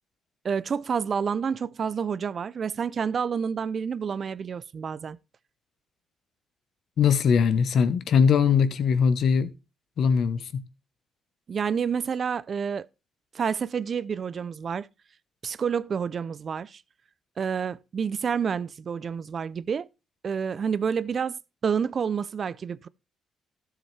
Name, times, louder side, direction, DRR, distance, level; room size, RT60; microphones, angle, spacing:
voice 1, 0.4-5.2 11.5-12.9 13.3-14.9 15.4-16.8 17.4-19.9 20.2-22.9, right 6 dB, 50° right, 0.4 m, -29 dB
voice 2, 7.0-9.5 10.0-10.6, left 6 dB, 65° left, 1.0 m, -21 dB
13.0 x 7.3 x 3.3 m
cardioid pair, 90°, 0 cm